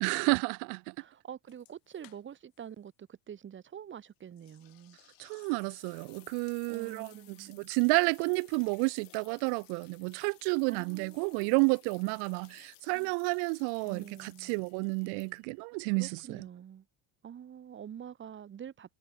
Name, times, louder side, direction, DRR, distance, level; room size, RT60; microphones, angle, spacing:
voice 1, 0.0-0.9 5.2-16.4, right 38 dB, 70° right, 0.7 m, -31 dB
voice 2, 1.0-5.0 6.7-7.6 10.7-11.6 12.9-13.1 13.8-14.5 16.0-16.9 17.2-19.0, right 9 dB, 30° right, 6.1 m, -46 dB
sound 1, 1.5-2.6 2.9-3.0 4.4-15.7, left 19 dB, 55° left, 6.1 m, -59 dB
cardioid pair, 165°, 41 cm